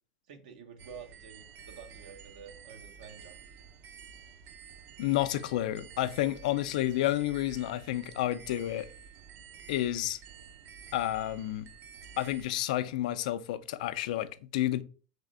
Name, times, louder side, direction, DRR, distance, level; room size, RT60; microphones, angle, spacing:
voice 1, 0.3-3.4, right 6 dB, 75° right, 1.0 m, -49 dB
sound 1, 0.8-12.6, right 6 dB, 45° right, 0.6 m, -51 dB
voice 2, 5.0-8.9 9.7-10.2 10.9-11.7 12.2-14.8, left 14 dB, 70° left, 0.4 m, -30 dB
3.4 x 3.3 x 3.8 m
supercardioid pair, 120°, 4 cm